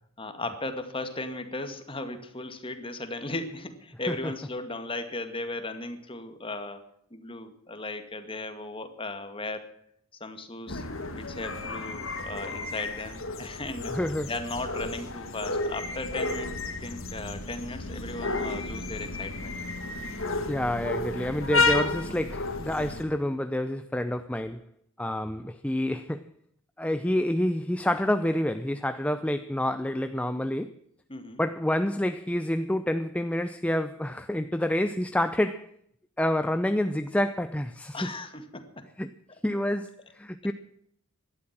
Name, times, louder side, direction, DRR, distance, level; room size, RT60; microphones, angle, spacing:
voice 1, 0.2-6.8 7.1-9.7 10.2-10.8 11.1-13.9 14.3-16.5 16.8-19.6 31.1-31.4 37.9-38.9, left 2 dB, 25° left, 2.1 m, -36 dB
sound 1, 10.7-23.0, left 3 dB, 65° left, 2.1 m, -32 dB
voice 2, 13.9-14.3 20.5-24.6 25.0-26.3 26.8-30.8 31.4-35.7 36.2-38.0 39.0-39.1 39.4-40.5, left 1 dB, 5° left, 0.5 m, -28 dB
17.5 x 12.5 x 6.0 m
head